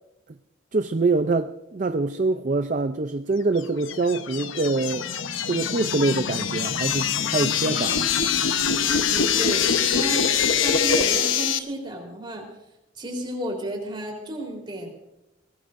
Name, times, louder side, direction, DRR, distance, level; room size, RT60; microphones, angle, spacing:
voice 1, 0.7-5.1 5.5-8.1, right 3 dB, 40° right, 0.5 m, -25 dB
sound 1, 3.6-11.6, left 7 dB, 85° left, 1.0 m, -24 dB
voice 2, 9.1-10.3 10.6-12.4 13.0-14.9, right 1 dB, 25° right, 3.7 m, -32 dB
23.0 x 18.0 x 2.6 m
head